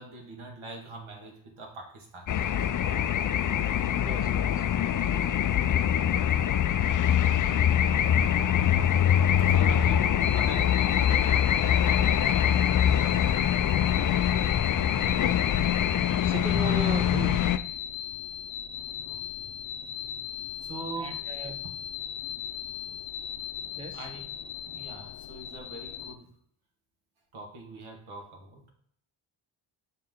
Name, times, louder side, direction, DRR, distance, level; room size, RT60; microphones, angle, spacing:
voice 1, 0.0-2.4 9.2-11.5 19.0-19.5 20.6-21.6 23.9-24.2 24.7-26.3 27.3-28.7, right 3 dB, 75° right, 1.8 m, -43 dB
sound 1, 2.3-17.6, left 9 dB, 45° left, 0.4 m, -24 dB
voice 2, 4.0-4.8 14.7-15.4 16.2-17.4 21.0-21.6 23.7-24.1, right 4 dB, 10° right, 0.5 m, -37 dB
sound 2, 10.2-26.1, left 9 dB, 70° left, 0.8 m, -38 dB
6.1 x 4.3 x 3.7 m
cardioid pair, 90°, 49 cm